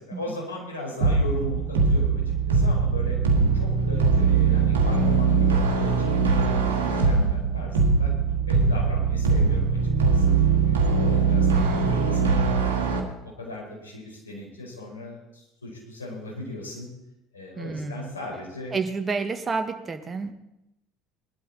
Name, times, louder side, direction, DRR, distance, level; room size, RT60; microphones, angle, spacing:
voice 1, 0.1-3.2 3.5-5.9 6.3-8.1 8.5-9.8 10.1-12.9 13.2-16.9 17.3-18.7, left 1 dB, 85° left, -1 dB, 4.6 m, -37 dB
sound 1, 1.0-13.0, right 4 dB, 80° right, 1.9 m, -21 dB
voice 2, 11.5-12.1 17.6-18.1 18.7-20.3, right 4 dB, 30° right, 7 dB, 1.6 m, -30 dB
20.5 x 12.0 x 4.2 m, 0.88 s
figure-of-eight pair, 65°, 0 cm